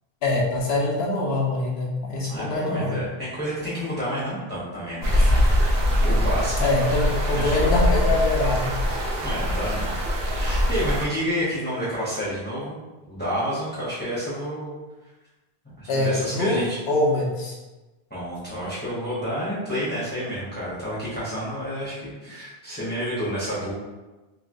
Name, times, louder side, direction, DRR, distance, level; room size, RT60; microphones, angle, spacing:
voice 1, 0.2-3.0 6.6-8.7 15.9-17.6, left 2 dB, 80° left, -2 dB, 0.9 m, -24 dB
voice 2, 2.3-5.4 6.0-6.7 7.3-7.8 9.2-9.9 10.3-12.8 13.1-14.7 15.6-16.8 18.1-23.7, equal, 10° left, -9 dB, 0.8 m, -29 dB
sound 1, 5.0-11.1, left 1 dB, 70° right, 0.9 m, -22 dB
2.9 x 2.7 x 2.5 m, 1.1 s
omnidirectional pair, 1.0 m